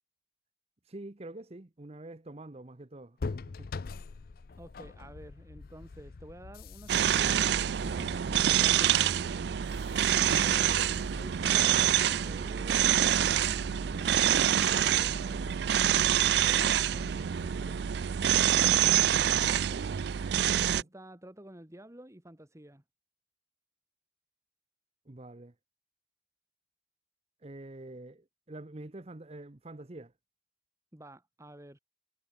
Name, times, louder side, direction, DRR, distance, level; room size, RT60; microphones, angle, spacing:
voice 1, 0.8-3.7 25.1-25.5 27.4-30.1, right 2 dB, 35° right, 0.9 m, -46 dB
sound 1, 3.2-18.9, left 4 dB, 55° left, 0.5 m, -46 dB
voice 2, 4.6-9.5 10.4-15.5 15.9-17.8 18.3-19.9 20.5-22.8 30.9-31.8, right 1 dB, 15° right, 1.7 m, -50 dB
sound 2, 6.9-20.8, right 10 dB, 60° right, 0.4 m, -26 dB
head